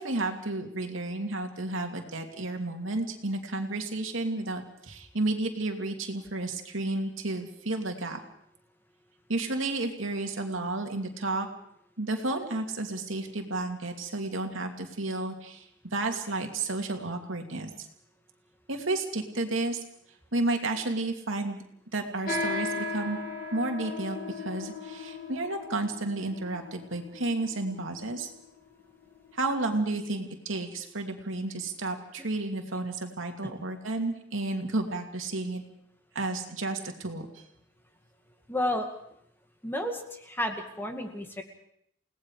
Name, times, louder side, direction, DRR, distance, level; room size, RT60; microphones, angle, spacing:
voice 1, 0.0-8.2 9.3-11.5 12.0-17.9 18.7-19.8 20.3-21.6 21.9-23.2 23.5-28.3 29.3-35.6 36.1-37.3, right 2 dB, 80° right, 3 dB, 2.7 m, -32 dB
sound 1, 22.3-30.0, left 3 dB, 45° left, 2.7 m, -37 dB
voice 2, 38.5-38.9 39.6-41.4, left 1 dB, 10° left, 4 dB, 2.2 m, -31 dB
29.5 x 18.5 x 4.9 m, 0.70 s
head